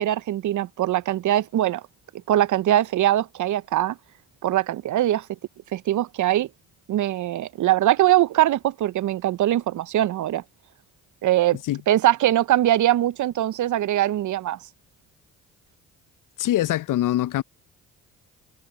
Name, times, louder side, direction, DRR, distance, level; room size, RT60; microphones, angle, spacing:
voice 1, 0.0-1.8 2.3-4.0 4.4-5.3 5.7-6.5 6.9-10.4 11.2-11.6 11.9-14.6, right 13 dB, 60° right, 0.9 m, -22 dB
voice 2, 16.4-17.4, left 13 dB, 65° left, 1.0 m, -23 dB
hypercardioid pair, 55°, 35 cm